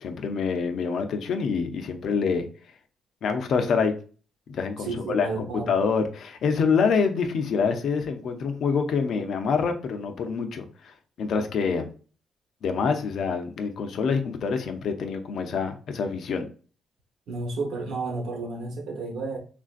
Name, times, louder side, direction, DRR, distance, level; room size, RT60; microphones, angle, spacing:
voice 1, 0.0-2.5 3.2-3.9 4.5-11.9 12.6-16.5, left 5 dB, 65° left, 0.6 m, -26 dB
voice 2, 4.8-5.7 17.3-19.4, right 3 dB, 75° right, 1.1 m, -31 dB
3.7 x 2.5 x 2.5 m
cardioid pair, 90°, 0 cm